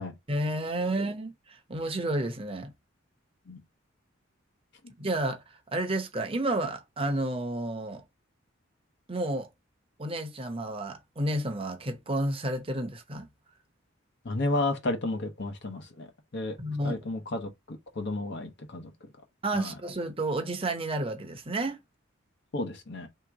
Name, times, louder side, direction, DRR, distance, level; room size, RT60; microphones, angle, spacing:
voice 1, 0.3-2.7 5.0-5.4 5.7-8.0 9.1-9.5 10.0-13.3 16.6-17.0 19.4-21.8, right 1 dB, 30° right, 0.8 m, -31 dB
voice 2, 14.2-16.1 16.3-16.6 16.8-18.9 19.5-19.8 22.5-23.1, left 2 dB, 60° left, 0.9 m, -32 dB
3.4 x 2.9 x 4.7 m
head